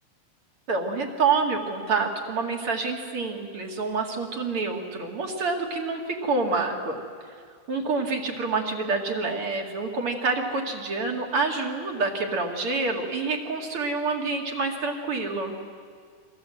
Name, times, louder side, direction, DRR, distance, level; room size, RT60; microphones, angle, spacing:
voice 1, 0.7-7.0 7.7-15.6, right 4 dB, 40° right, 2 dB, 2.2 m, -27 dB
29.5 x 23.5 x 7.9 m, 2.1 s
omnidirectional pair, 5.6 m